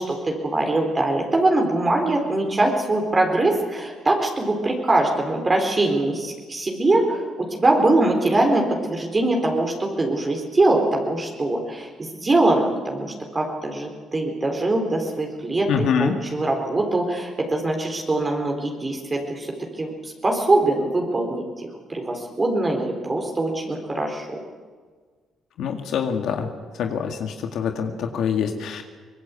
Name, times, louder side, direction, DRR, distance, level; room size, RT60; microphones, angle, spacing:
voice 1, 0.0-7.2 7.5-21.4 21.9-24.4, right 2 dB, 25° right, 1 dB, 4.1 m, -22 dB
voice 2, 15.7-16.1 25.6-26.5 26.8-28.8, left 7 dB, 75° left, 4 dB, 2.1 m, -25 dB
24.0 x 19.5 x 8.4 m, 1.5 s
cardioid pair, 90°, 0 cm